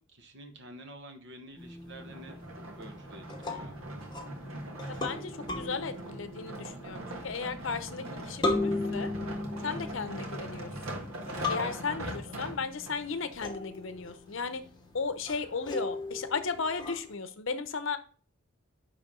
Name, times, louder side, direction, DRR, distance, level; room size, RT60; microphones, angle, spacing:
voice 1, 0.1-2.4 2.8-3.8 9.6-9.9, right 1 dB, 55° right, 6 dB, 1.2 m, -49 dB
sound 1, 1.6-17.1, left 2 dB, 20° left, 1.1 m, -38 dB
sound 2, 2.0-13.0 13.6-13.7, right 1 dB, 80° right, 1.6 m, -41 dB
voice 2, 4.9-9.1 9.6-11.1 11.5-14.6 14.9-18.0, left 4 dB, 60° left, 11 dB, 0.7 m, -35 dB
10.0 x 3.5 x 3.7 m, 0.40 s
head